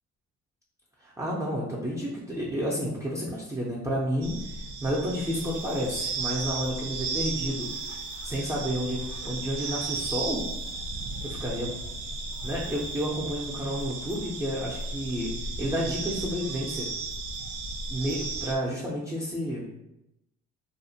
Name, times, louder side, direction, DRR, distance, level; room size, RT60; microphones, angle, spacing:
voice 1, 1.0-7.7 8.2-10.4 11.2-11.7 12.4-15.3 15.6-16.9 17.9-19.6, equal, 10° right, -5 dB, 0.4 m, -31 dB
sound 1, 4.2-18.5, right 3 dB, 70° right, 0.5 m, -35 dB
2.4 x 2.1 x 2.6 m, 0.89 s
cardioid pair, 90°, 30 cm